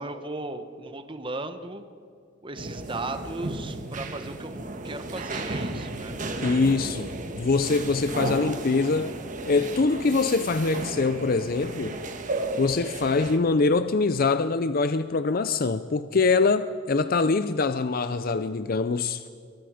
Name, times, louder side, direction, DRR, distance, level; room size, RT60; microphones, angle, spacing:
voice 1, 0.0-1.8 2.4-4.5 4.8-6.1, right 2 dB, 25° right, 1.2 m, -36 dB
sound 1, 2.6-13.4, right 2 dB, 40° right, 1.7 m, -34 dB
voice 2, 6.4-9.2 9.5-12.0 12.6-19.2, left 4 dB, 50° left, 0.5 m, -24 dB
26.5 x 23.5 x 5.0 m
head